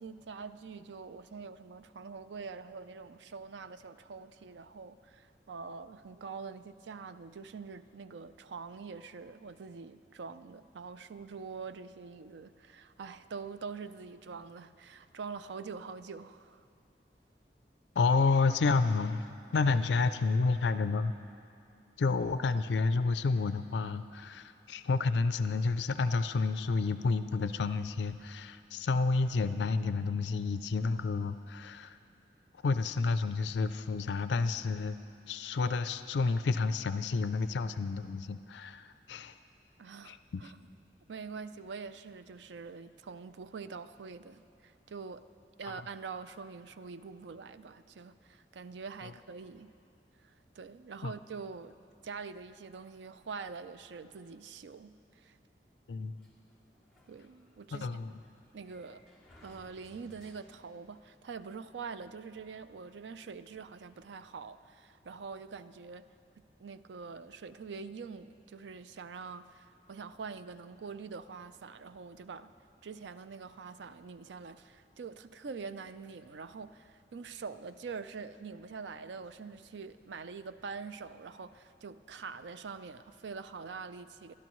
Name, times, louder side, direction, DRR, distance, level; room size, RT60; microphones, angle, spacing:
voice 1, 0.0-16.7 39.8-40.6 41.1-45.3 45.6-49.7 50.2-51.8 52.0-55.4 57.1-58.2 58.5-59.0 59.4-66.1 66.4-72.5 72.8-84.3, right 5 dB, 90° right, 12 dB, 0.4 m, -45 dB
voice 2, 18.0-21.1 22.0-32.0 32.6-35.0 35.3-39.3 40.1-40.5 45.7-45.8 51.0-51.1 55.9-56.2 57.7-58.1, left 4 dB, 85° left, 12 dB, 0.4 m, -30 dB
Sliding door, 56.2-60.9, left 1 dB, ahead, 2.1 m, -61 dB
23.0 x 12.0 x 3.1 m, 2.5 s
head